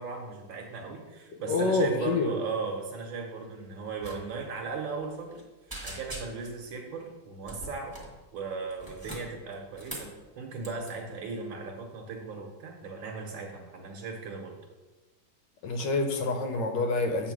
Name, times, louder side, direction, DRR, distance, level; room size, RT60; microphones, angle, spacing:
voice 1, 0.0-5.4 5.8-8.0 8.3-10.1 10.3-14.6, right 4 dB, 80° right, -1 dB, 1.8 m, -37 dB
voice 2, 1.5-2.3 15.6-17.3, left 3 dB, 65° left, 5 dB, 1.5 m, -27 dB
sound 1, 4.0-4.2 4.4-4.6 5.0-5.4 5.7-6.6 7.4-8.2 8.7-10.2 10.6-10.9, right 1 dB, 10° right, 1.2 m, -42 dB
8.0 x 3.7 x 6.2 m, 1.2 s
omnidirectional pair, 2.2 m